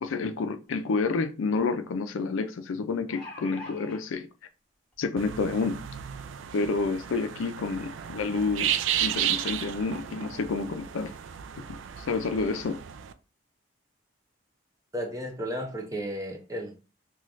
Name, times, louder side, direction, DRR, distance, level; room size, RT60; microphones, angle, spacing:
voice 1, 0.0-4.3 5.0-5.8 6.5-11.1 11.5-12.8, left 4 dB, 90° left, 0.4 m, -29 dB
sound 1, 0.7-0.8 1.1-1.2 2.8-4.0 4.9-5.0 5.4-5.5, left 2 dB, 5° left, 1.3 m, -44 dB
sound 2, 5.2-13.1, right 10 dB, 75° right, 0.3 m, -33 dB
voice 2, 14.9-16.8, equal, 15° right, 0.6 m, -33 dB
3.1 x 2.3 x 3.8 m
head